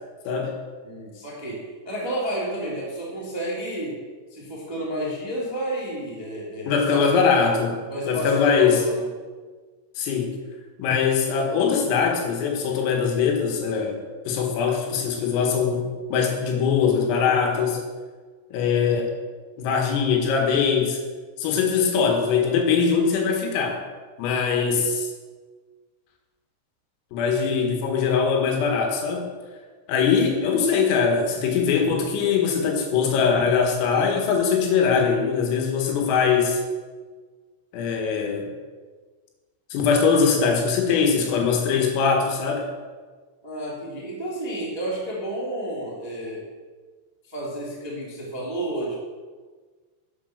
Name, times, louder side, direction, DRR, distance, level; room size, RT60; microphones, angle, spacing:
voice 1, 0.3-0.6 6.7-7.8 8.1-8.8 10.0-10.4 10.8-14.0 14.3-17.8 18.5-19.1 19.6-21.0 21.4-23.8 24.2-25.1 27.1-29.3 29.9-36.6 37.7-38.5 39.7-42.7, left 6 dB, 90° left, 2 dB, 4.4 m, -22 dB
voice 2, 0.8-7.1 7.9-9.1 24.4-24.8 27.4-27.8 30.0-30.3 43.4-46.5 47.2-48.9, right 1 dB, 15° right, -5 dB, 0.8 m, -31 dB
10.5 x 7.7 x 6.6 m, 1.4 s
omnidirectional pair, 5.8 m